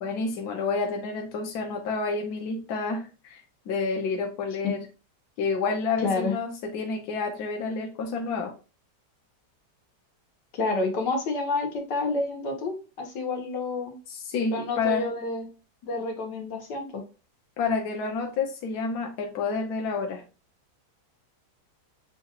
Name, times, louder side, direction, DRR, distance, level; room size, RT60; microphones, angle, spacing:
voice 1, 0.0-3.4 3.7-4.9 5.4-8.5 14.1-15.1 17.6-20.2, left 4 dB, 70° left, 2 dB, 1.2 m, -29 dB
voice 2, 6.0-6.3 10.5-14.0 14.5-15.5 15.8-17.0, left 3 dB, 85° left, 2 dB, 1.8 m, -29 dB
6.9 x 2.4 x 2.9 m, 0.32 s
omnidirectional pair, 1.8 m